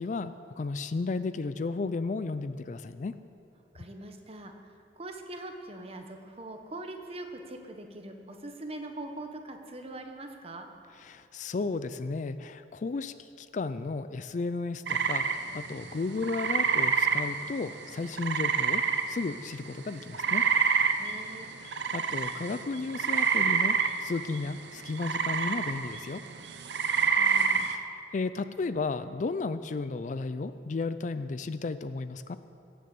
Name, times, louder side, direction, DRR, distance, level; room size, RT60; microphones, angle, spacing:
voice 1, 0.0-3.2 11.0-20.4 21.6-26.2 27.7-32.4, left 3 dB, 45° left, 13 dB, 0.4 m, -34 dB
voice 2, 3.7-4.5 5.0-10.7 21.0-21.5 27.1-27.7, right 2 dB, 35° right, 4 dB, 1.1 m, -42 dB
sound 1, 14.9-19.5 19.8-27.8, right 5 dB, 75° right, 0.8 m, -28 dB
17.0 x 6.9 x 7.8 m, 2.7 s
head